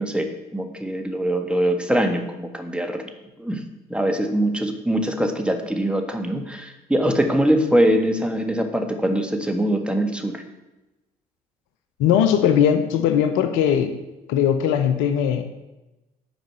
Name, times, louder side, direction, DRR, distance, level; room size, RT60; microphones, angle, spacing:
voice 1, 0.0-3.1 3.4-3.6 3.9-10.4, right 1 dB, 5° right, 4 dB, 1.7 m, -23 dB
voice 2, 12.0-13.9 14.3-15.4, left 9 dB, 70° left, 9 dB, 0.8 m, -19 dB
9.3 x 5.1 x 7.8 m, 1.0 s
hypercardioid pair, 50°, 21 cm